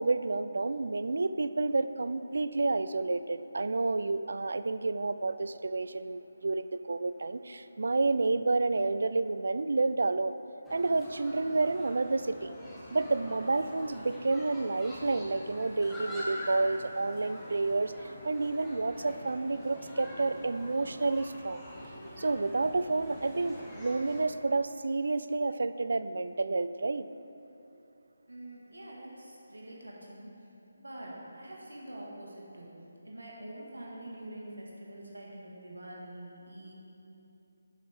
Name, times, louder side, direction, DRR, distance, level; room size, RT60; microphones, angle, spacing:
voice 1, 0.0-10.4 10.7-12.5 12.9-21.6 22.2-27.1, right 3 dB, 65° right, 12 dB, 0.4 m, -30 dB
sound 1, 10.6-24.2, equal, 5° left, 1.5 m, -45 dB
voice 2, 28.3-30.3 30.7-32.7 33.1-36.7, right 1 dB, 80° right, -3 dB, 1.8 m, -45 dB
11.0 x 7.4 x 3.6 m, 2.8 s
figure-of-eight pair, 150°, 0 cm